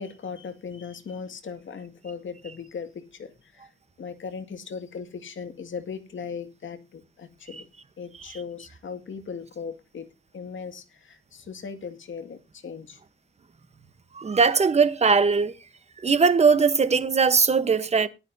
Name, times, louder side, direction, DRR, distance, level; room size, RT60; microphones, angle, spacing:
voice 1, 0.0-3.7 4.0-7.7 8.0-10.1 10.3-13.0, left 6 dB, 65° left, 2.0 m, -38 dB
voice 2, 14.2-15.5 16.0-18.1, right 5 dB, 30° right, 1.0 m, -20 dB
18.5 x 11.5 x 2.7 m
wide cardioid pair, 145°, 21 cm